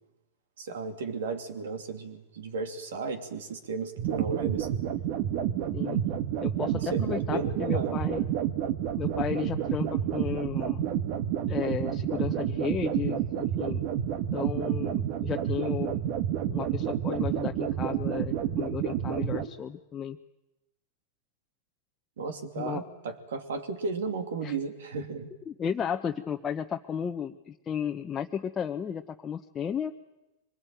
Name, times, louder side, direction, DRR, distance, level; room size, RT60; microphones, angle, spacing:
voice 1, 0.6-4.8 6.6-7.9 22.2-25.3, right 4 dB, 75° right, 7 dB, 2.8 m, -34 dB
sound 1, 4.0-19.5, right 10 dB, 55° right, 1.5 m, -29 dB
voice 2, 6.4-8.2 9.0-10.8 11.5-13.9 14.3-16.0 16.5-20.2 22.6-22.8 24.4-24.6 25.5-29.9, left 8 dB, 25° left, 3 dB, 0.9 m, -34 dB
24.0 x 21.0 x 9.1 m, 0.98 s
hypercardioid pair, 105°, 0 cm